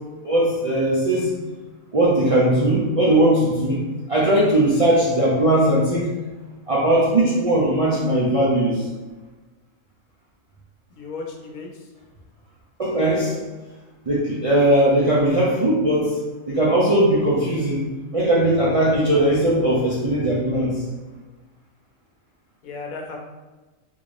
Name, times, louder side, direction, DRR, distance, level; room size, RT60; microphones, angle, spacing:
voice 1, 0.2-1.3 1.9-6.1 6.7-8.8 12.8-13.4 14.1-16.2 16.5-17.9 18.1-20.8, right 1 dB, 50° right, -7 dB, 0.4 m, -19 dB
voice 2, 10.9-11.9 22.6-23.2, left 4 dB, 80° left, 0 dB, 1.1 m, -35 dB
3.7 x 2.5 x 3.2 m, 1.2 s
omnidirectional pair, 1.4 m